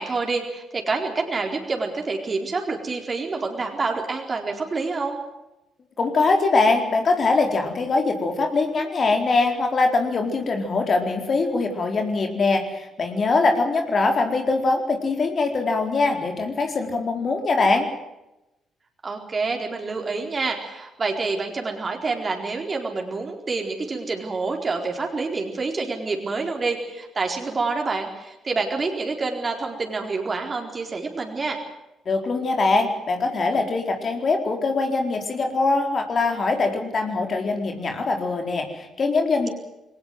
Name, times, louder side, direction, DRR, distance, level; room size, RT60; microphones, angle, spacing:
voice 1, 0.0-5.2 19.0-31.6, right 4 dB, 35° right, 2 dB, 4.3 m, -27 dB
voice 2, 6.0-17.9 32.1-39.5, left 3 dB, 45° left, 4 dB, 4.2 m, -22 dB
22.0 x 19.0 x 7.9 m, 0.94 s
hypercardioid pair, 45°, 0 cm